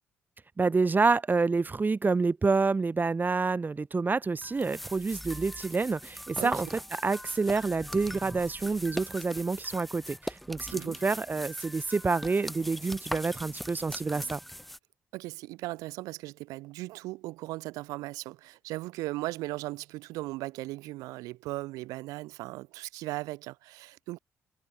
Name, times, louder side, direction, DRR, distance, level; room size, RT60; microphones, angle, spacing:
voice 1, 0.6-6.7 7.0-14.4, right 4 dB, 30° right, 3.0 m, -28 dB
sound 1, 4.4-14.8, equal, ahead, 6.8 m, -41 dB
voice 2, 15.1-24.2, right 19 dB, 90° right, 2.6 m, -37 dB
supercardioid pair, 60°, 6 cm